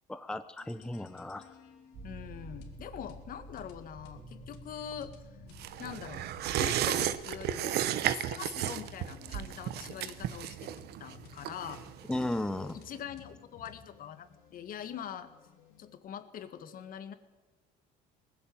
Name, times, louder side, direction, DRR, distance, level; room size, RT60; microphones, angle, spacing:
voice 1, 0.1-1.5 12.1-12.8, left 1 dB, 5° left, 11 dB, 0.7 m, -35 dB
sound 1, 0.6-15.9, left 5 dB, 80° left, 3.2 m, -55 dB
sound 2, 1.9-7.5, right 2 dB, 50° right, 3.6 m, -51 dB
voice 2, 2.0-5.1 5.8-6.3 6.5-10.7 11.0-11.8 12.5-15.3 15.8-17.1, left 9 dB, 55° left, 11 dB, 1.9 m, -43 dB
sound 3, 5.6-12.6 12.9-13.0, right 12 dB, 65° right, 1.1 m, -34 dB
19.5 x 15.0 x 8.9 m, 1.2 s
cardioid pair, 120°, 18 cm